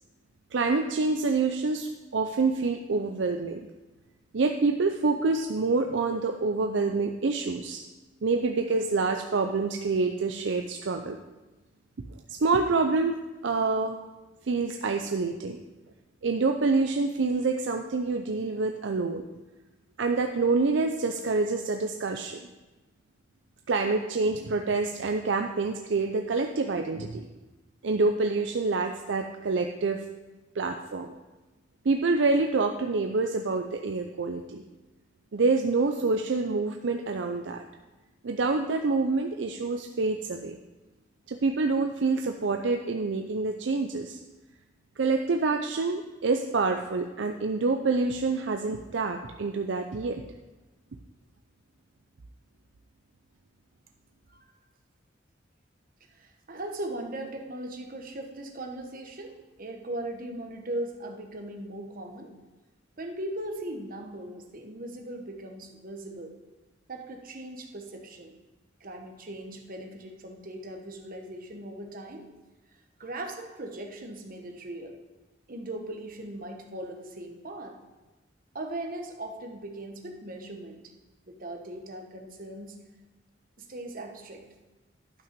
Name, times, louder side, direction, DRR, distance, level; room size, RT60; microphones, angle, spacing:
voice 1, 0.5-3.7 4.3-7.8 8.2-11.2 12.4-14.0 14.4-15.6 16.2-19.2 20.0-22.4 23.7-27.3 27.8-30.0 30.5-31.1 31.8-34.6 35.3-37.6 38.2-40.6 41.3-44.2 45.0-50.2, right 3 dB, 65° right, 5 dB, 0.5 m, -27 dB
voice 2, 56.1-62.3 63.0-66.3 66.9-68.4 68.8-72.3 73.0-74.9 75.5-77.7 78.5-80.8 81.3-82.8 83.6-84.4, right 1 dB, 50° right, 3 dB, 1.2 m, -39 dB
11.5 x 5.9 x 5.2 m, 1.1 s
head